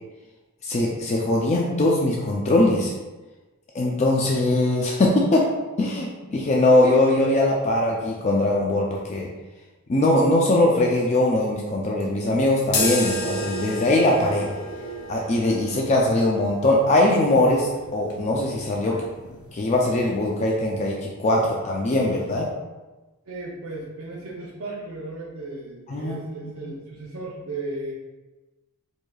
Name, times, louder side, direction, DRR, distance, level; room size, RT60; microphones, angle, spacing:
voice 1, 0.6-2.9 3.7-5.5 5.8-9.3 9.9-14.5 15.1-19.0 19.5-22.5 25.9-26.7, left 1 dB, 30° left, -1 dB, 0.4 m, -21 dB
sound 1, 12.7-20.4, left 1 dB, 90° left, 0.6 m, -32 dB
voice 2, 23.2-27.9, right 2 dB, 75° right, -3 dB, 0.6 m, -35 dB
4.6 x 2.7 x 2.3 m, 1.2 s
head